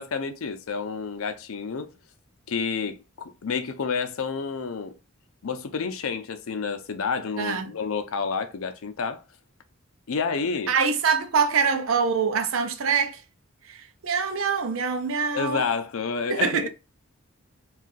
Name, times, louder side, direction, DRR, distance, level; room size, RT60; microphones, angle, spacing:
voice 1, 0.0-1.9 2.5-4.9 5.4-9.2 10.1-10.7 15.3-16.7, left 5 dB, 80° left, 0.5 m, -29 dB
voice 2, 7.4-7.7 10.7-13.2 13.6-15.7 16.3-16.7, right 6 dB, 70° right, 0.5 m, -24 dB
2.6 x 2.4 x 3.9 m
head